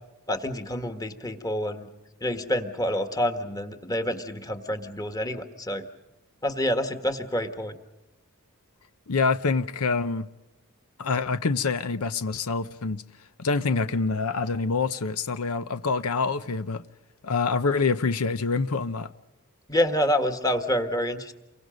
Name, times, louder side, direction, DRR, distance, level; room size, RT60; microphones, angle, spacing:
voice 1, 0.3-1.9 2.2-5.8 6.4-7.8 19.7-21.3, equal, 15° left, 1.6 m, -27 dB
voice 2, 9.1-10.3 11.0-13.0 13.4-16.8 17.2-19.1, left 4 dB, 80° left, 0.7 m, -26 dB
29.0 x 23.5 x 5.2 m
head